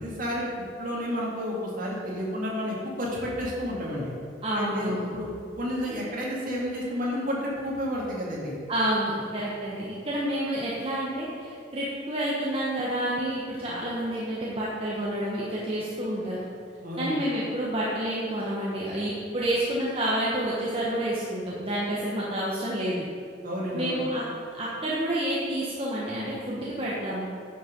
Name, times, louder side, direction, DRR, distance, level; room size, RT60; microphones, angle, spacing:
voice 1, 0.0-4.1 4.5-5.3 5.6-8.6 16.8-17.2 23.4-24.0, equal, 50° right, -4 dB, 2.4 m, -31 dB
voice 2, 4.4-5.1 8.7-16.5 17.0-23.1 23.7-24.2 24.5-27.3, right 1 dB, 30° right, -7 dB, 1.3 m, -29 dB
10.0 x 6.5 x 5.2 m, 2.3 s
head